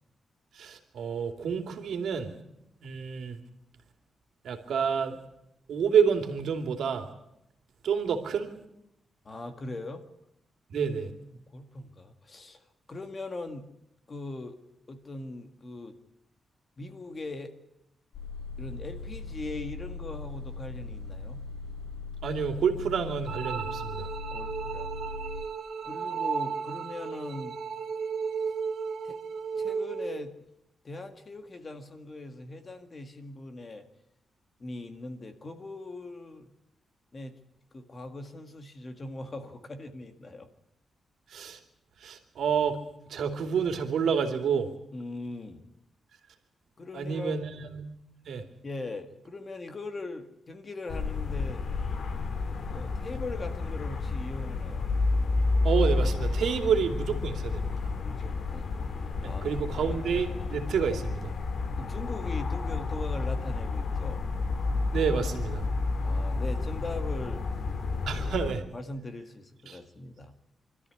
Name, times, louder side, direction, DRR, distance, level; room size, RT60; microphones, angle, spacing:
voice 1, 0.5-2.4 2.8-3.4 4.4-5.2 5.7-7.1 7.8-8.6 10.7-11.1 22.2-24.1 41.3-41.6 42.0-42.8 43.1-44.7 46.9-47.8 48.2-48.4 55.6-57.9 59.2-61.3 64.9-65.7 68.1-68.6 69.7-69.8, right 6 dB, 75° right, 6 dB, 2.7 m, -29 dB
voice 2, 9.2-10.1 11.3-12.6 12.9-13.7 14.1-14.6 14.9-16.0 16.8-17.5 18.6-21.4 24.3-24.9 25.8-27.6 29.0-29.2 29.6-30.3 30.8-33.8 34.6-36.5 37.1-37.4 37.7-40.5 44.9-45.6 46.8-47.5 48.6-51.6 52.6-54.9 58.0-58.8 59.2-59.5 61.8-64.3 66.0-67.4 68.1-68.3 68.7-70.3, left 2 dB, 25° left, 7 dB, 1.8 m, -40 dB
sound 1, 18.1-25.4, left 3 dB, 85° left, 4.3 m, -39 dB
sound 2, 23.3-30.3, right 6 dB, 55° right, 2.4 m, -34 dB
sound 3, 50.9-68.5, left 3 dB, 50° left, 2.0 m, -30 dB
25.0 x 13.5 x 9.9 m, 0.79 s
wide cardioid pair, 180°, 0 cm